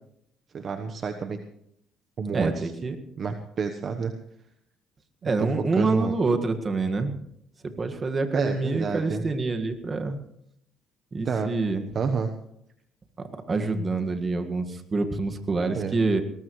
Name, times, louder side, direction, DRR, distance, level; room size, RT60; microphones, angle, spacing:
voice 1, 0.5-1.4 2.2-2.7 3.2-4.1 5.2-6.1 8.3-9.2 11.2-11.5 11.9-12.3 15.8-16.0, right 5 dB, 45° right, 6 dB, 1.1 m, -29 dB
voice 2, 2.3-3.0 5.2-7.2 7.6-10.2 11.1-11.9 13.2-16.2, right 3 dB, 30° right, 6 dB, 1.8 m, -26 dB
20.5 x 19.0 x 3.2 m, 0.74 s
cardioid pair, 115°, 0 cm